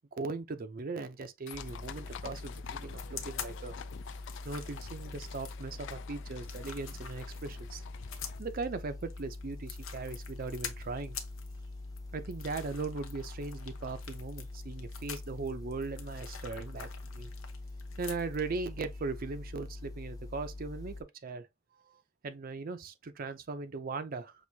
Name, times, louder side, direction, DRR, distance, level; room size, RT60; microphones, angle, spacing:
voice 1, 0.2-3.7 4.4-7.8 8.4-11.2 12.1-16.9 17.1-17.3 18.0-21.0 21.2-21.5 22.2-24.3, right 3 dB, 45° right, 0.5 m, -39 dB
sound 1, 1.5-8.4, left 8 dB, 65° left, 0.3 m, -48 dB
sound 2, 1.5-21.0, left 2 dB, 20° left, 0.6 m, -44 dB
sound 3, 2.9-18.6, left 8 dB, 85° left, 0.8 m, -46 dB
6.0 x 2.6 x 2.7 m
head